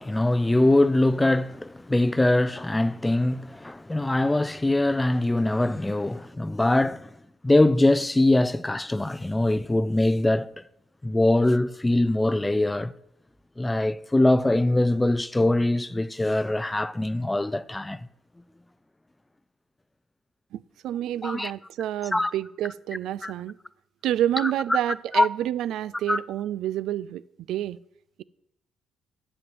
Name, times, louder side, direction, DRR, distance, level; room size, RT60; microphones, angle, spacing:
voice 1, 0.0-7.1 7.4-10.5 11.0-12.9 13.6-18.1 21.2-21.5 22.1-22.3 23.2-23.3 24.4-24.5 25.1-25.3 26.1-26.2, left 1 dB, 15° left, 0.4 m, -22 dB
voice 2, 20.5-23.6 24.0-27.2 27.5-27.8, right 12 dB, 80° right, 0.3 m, -28 dB
7.9 x 7.0 x 7.6 m
cardioid pair, 90°, 0 cm